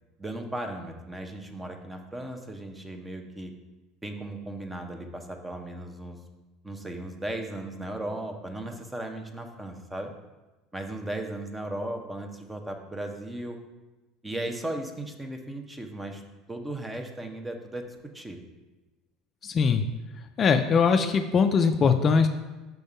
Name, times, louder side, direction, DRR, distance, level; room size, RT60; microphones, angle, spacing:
voice 1, 0.2-3.5 4.0-6.2 6.6-10.1 10.7-13.6 14.2-16.2 16.5-17.8 18.1-18.4, right 1 dB, 15° right, 4 dB, 0.8 m, -36 dB
voice 2, 19.4-19.8 20.4-22.3, left 5 dB, 40° left, 7 dB, 0.4 m, -21 dB
5.9 x 3.5 x 5.4 m, 1.1 s
supercardioid pair, 90°, 0 cm